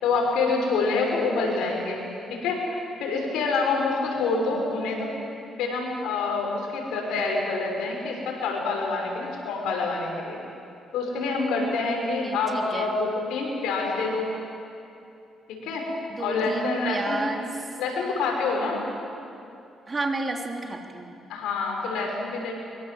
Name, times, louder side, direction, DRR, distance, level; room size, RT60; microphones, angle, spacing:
voice 1, 0.0-2.0 2.3-5.1 5.6-10.4 10.9-14.3 15.6-15.9 16.2-17.2 17.8-18.8 21.3-22.5, left 3 dB, 90° left, 0 dB, 5.9 m, -27 dB
voice 2, 11.8-12.9 16.1-17.5 19.9-21.2, right 2 dB, 30° right, 2 dB, 3.1 m, -32 dB
24.0 x 23.5 x 7.8 m, 2.6 s
cardioid pair, 90°, 0 cm